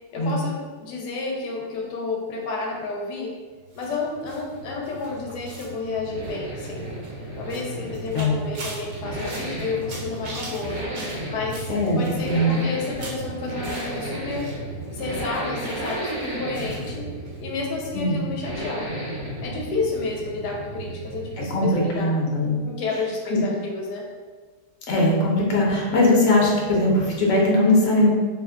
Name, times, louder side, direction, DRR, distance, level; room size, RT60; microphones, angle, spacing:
voice 1, 0.1-3.3 3.7-7.0 7.4-10.8 11.3-11.7 12.0-14.5 14.9-17.1 17.4-18.9 19.4-22.1 22.6-24.1, left 3 dB, 85° left, -1 dB, 1.2 m, -31 dB
Accelerating revving vroom, 3.5-21.7 22.0-22.1, right 1 dB, 75° right, 1.2 m, -34 dB
sound 1, 3.7-14.6 14.8-16.9 17.2-17.4 17.6-17.7, right 2 dB, 90° right, 1.4 m, -42 dB
voice 2, 11.7-12.5 17.9-18.2 21.5-22.6 23.3-23.4 24.9-28.1, left 1 dB, 60° left, -3 dB, 1.0 m, -20 dB
3.2 x 2.1 x 3.5 m, 1.5 s
omnidirectional pair, 1.7 m